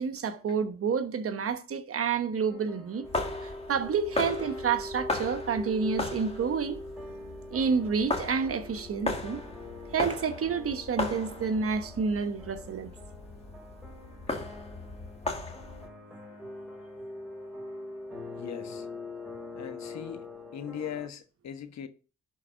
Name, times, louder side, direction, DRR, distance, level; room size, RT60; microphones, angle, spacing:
voice 1, 0.0-3.1 3.4-6.8 7.5-9.4 9.9-12.9, right 6 dB, 50° right, 1.1 m, -29 dB
sound 1, 2.5-21.1, left 1 dB, ahead, 5.1 m, -43 dB
sound 2, 3.0-15.9, left 2 dB, 20° left, 2.0 m, -37 dB
voice 2, 18.4-18.9 19.6-20.3 20.5-21.9, left 8 dB, 65° left, 1.4 m, -39 dB
11.5 x 4.7 x 5.1 m
cardioid pair, 90°, 30 cm